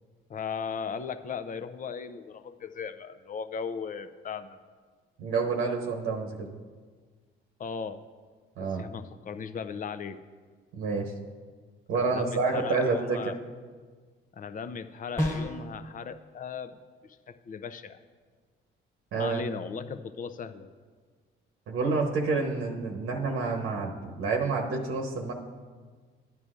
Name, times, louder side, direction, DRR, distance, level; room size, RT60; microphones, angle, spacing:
voice 1, 0.3-4.6 7.6-8.0 8.6-10.2 11.9-13.4 14.3-16.8 17.0-18.0 19.1-20.7, left 6 dB, 40° left, 11 dB, 0.6 m, -37 dB
voice 2, 5.2-6.5 8.6-8.8 10.7-11.1 11.9-13.2 19.1-19.4 21.7-25.3, right 4 dB, 80° right, 1 dB, 1.0 m, -28 dB
sound 1, 15.2-15.7, equal, 15° left, 1.4 m, -29 dB
12.5 x 9.5 x 2.5 m, 1.5 s
cardioid pair, 85°, 21 cm